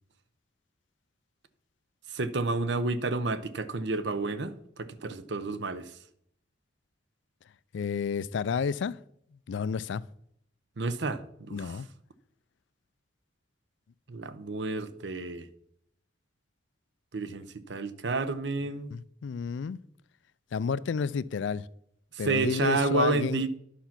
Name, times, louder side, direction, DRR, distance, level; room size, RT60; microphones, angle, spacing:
voice 1, 2.1-5.9 10.8-11.8 14.1-15.5 17.1-18.9 22.2-23.5, right 3 dB, 70° right, 0.7 m, -30 dB
voice 2, 7.7-9.0 9.5-10.0 11.5-11.9 18.9-19.8 20.5-21.7 22.2-23.4, left 6 dB, 75° left, 0.4 m, -31 dB
10.0 x 5.9 x 5.8 m
head